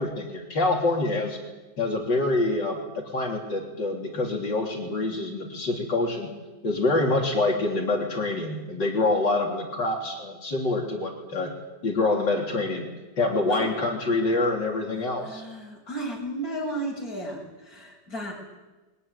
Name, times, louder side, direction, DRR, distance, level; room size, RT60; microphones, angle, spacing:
voice 1, 0.0-1.4 1.8-6.3 6.6-11.5 11.8-12.9 13.2-15.4, left 2 dB, 65° left, 1 dB, 4.0 m, -26 dB
voice 2, 15.2-18.3, right 1 dB, 50° left, -1 dB, 7.5 m, -34 dB
22.0 x 18.0 x 9.9 m, 1.2 s
omnidirectional pair, 2.0 m